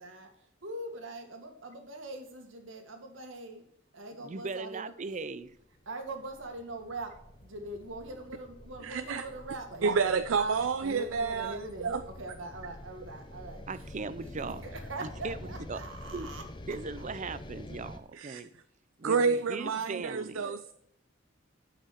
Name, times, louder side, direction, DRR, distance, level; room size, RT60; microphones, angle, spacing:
voice 1, 0.0-3.7 3.9-5.2 5.9-17.1 19.0-20.6, right 1 dB, 75° right, 5 dB, 1.8 m, -43 dB
voice 2, 4.2-5.5 13.7-14.6 15.2-15.4 15.7-15.8 16.1-16.3 16.7-18.5 19.0-20.5, right 4 dB, 40° right, 15 dB, 0.6 m, -38 dB
sound 1, 5.4-18.0, left 1 dB, 25° left, 0.8 m, -47 dB
voice 3, 8.8-9.2 9.8-12.0 18.1-18.4 19.0-20.7, right 5 dB, 90° right, 11 dB, 0.5 m, -29 dB
8.2 x 5.9 x 5.8 m, 0.71 s
head